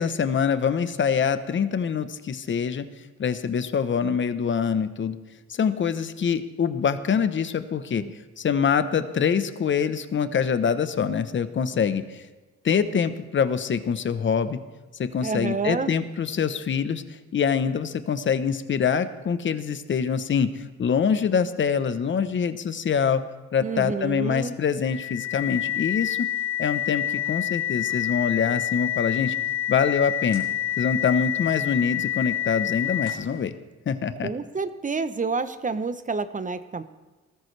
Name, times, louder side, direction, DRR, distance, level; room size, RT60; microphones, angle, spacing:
voice 1, 0.0-2.9 3.2-5.2 5.5-8.0 8.4-12.2 12.6-14.6 15.0-17.0 17.3-23.2 23.5-26.3 26.6-29.3 29.7-30.4 30.8-33.5 33.9-34.3, left 6 dB, 40° left, 11 dB, 0.9 m, -25 dB
voice 2, 15.2-15.9 23.6-24.5 34.2-36.8, right 4 dB, 25° right, 12 dB, 0.8 m, -29 dB
sound 1, 24.8-33.4, left 11 dB, 90° left, 3.6 m, -28 dB
19.5 x 13.5 x 3.3 m, 1.2 s
cardioid pair, 90°, 30 cm